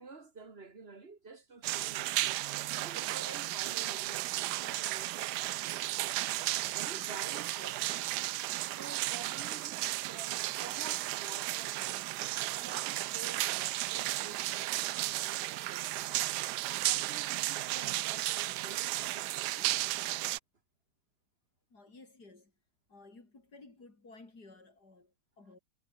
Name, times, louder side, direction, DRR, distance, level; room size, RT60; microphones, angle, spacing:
voice 1, 0.0-2.5 2.8-5.6 6.4-8.1 8.7-12.1 12.5-16.3 16.8-19.8, right 4 dB, 35° right, 2.6 m, -50 dB
sound 1, 1.6-20.4, right 16 dB, 75° right, 1.1 m, -34 dB
voice 2, 21.7-22.5 22.9-25.6, left 3 dB, 65° left, 5.2 m, -55 dB
omnidirectional pair, 1.9 m